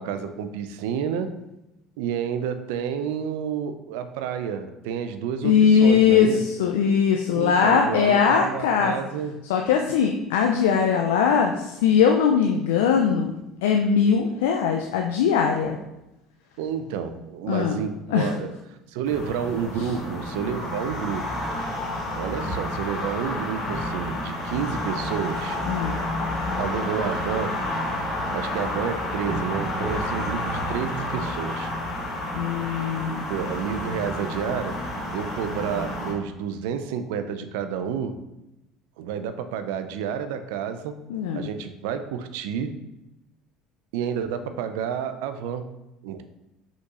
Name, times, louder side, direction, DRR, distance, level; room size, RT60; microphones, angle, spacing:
voice 1, 0.0-1.3 2.0-6.4 7.3-9.4 16.6-18.6 18.9-21.4 22.2-25.6 26.5-27.5 28.3-31.7 33.3-34.8 35.1-38.2 39.0-40.9 41.3-42.7 43.9-45.7 46.0-46.2, right 7 dB, 75° right, 9 dB, 0.3 m, -30 dB
voice 2, 5.4-8.9 9.5-13.3 13.6-15.8 17.5-17.8 18.1-18.3 25.7-26.0 32.4-33.2 41.1-41.5, left 7 dB, 80° left, 3 dB, 0.3 m, -20 dB
sound 1, 19.1-36.1, left 1 dB, 50° left, 1.5 m, -30 dB
5.0 x 4.0 x 2.4 m, 0.93 s
hypercardioid pair, 70°, 0 cm